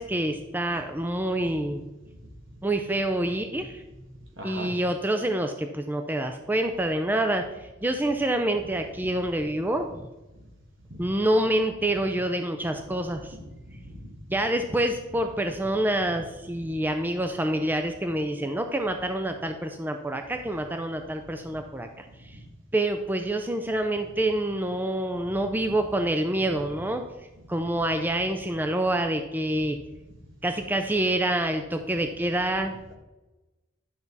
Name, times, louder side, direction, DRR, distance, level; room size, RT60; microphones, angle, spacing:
voice 1, 0.0-1.8 2.6-3.8 4.4-10.0 11.0-13.4 14.3-22.4 22.7-27.0 27.5-29.8 30.4-32.7, right 1 dB, 10° right, 6 dB, 0.4 m, -27 dB
voice 2, 4.4-4.7 8.6-8.7 9.4-9.5 13.1-14.4 16.1-16.2 22.3-22.4, equal, 70° right, 1 dB, 2.0 m, -41 dB
11.0 x 5.9 x 4.0 m, 1.1 s
head